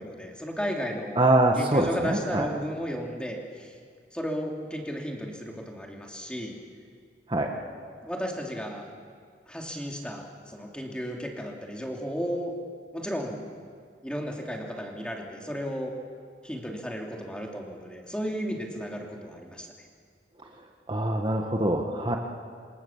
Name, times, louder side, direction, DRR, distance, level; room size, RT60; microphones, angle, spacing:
voice 1, 0.0-1.2 1.5-3.8 4.1-6.6 8.0-8.9 9.5-12.5 12.9-13.4 14.0-15.9 16.4-19.7, equal, 5° left, 0 dB, 2.9 m, -34 dB
voice 2, 1.2-2.4 7.3-7.5 20.9-22.2, right 1 dB, 30° right, 2 dB, 1.6 m, -24 dB
27.5 x 26.0 x 7.3 m, 2.1 s
head